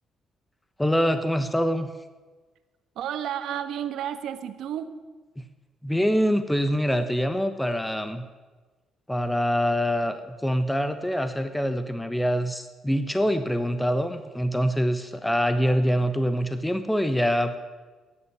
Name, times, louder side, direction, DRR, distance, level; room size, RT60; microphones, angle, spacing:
voice 1, 0.8-1.9 5.8-8.3 9.1-17.6, equal, 5° left, 9 dB, 1.2 m, -25 dB
voice 2, 2.9-4.9, right 10 dB, 80° right, 10 dB, 1.3 m, -31 dB
14.0 x 10.0 x 9.8 m, 1.3 s
cardioid pair, 90°, 0 cm